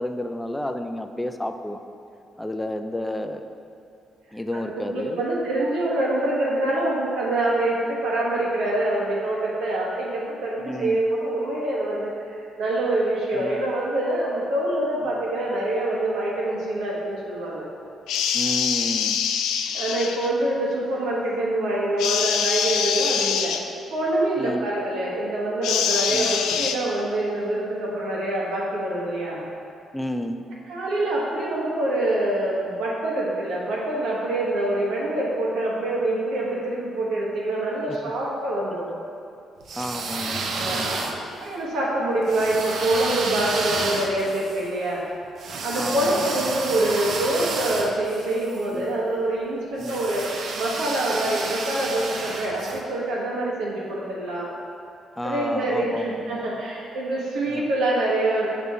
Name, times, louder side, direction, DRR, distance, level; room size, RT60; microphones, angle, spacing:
voice 1, 0.0-1.8 2.4-3.4 4.3-5.2 10.6-11.0 13.3-13.6 18.3-19.2 24.4-24.6 26.1-26.3 29.9-30.4 37.9-38.0 39.7-40.9 45.7-46.3 48.7-49.0 49.8-50.0 51.2-51.4 55.2-56.5 57.5-57.7, left 1 dB, 10° left, 6 dB, 0.3 m, -31 dB
voice 2, 4.7-17.7 19.7-23.6 23.9-29.4 30.7-38.9 40.5-45.0 45.6-54.5 55.2-58.5, right 1 dB, 85° right, -4 dB, 1.3 m, -25 dB
sound 1, 18.1-20.3 22.0-23.6 25.6-26.8, left 7 dB, 90° left, 0.3 m, -24 dB
sound 2, 39.6-41.5 42.3-48.6 49.8-52.8, right 3 dB, 65° right, 0.6 m, -31 dB
6.6 x 3.5 x 4.2 m, 2.5 s
cardioid pair, 90°, 0 cm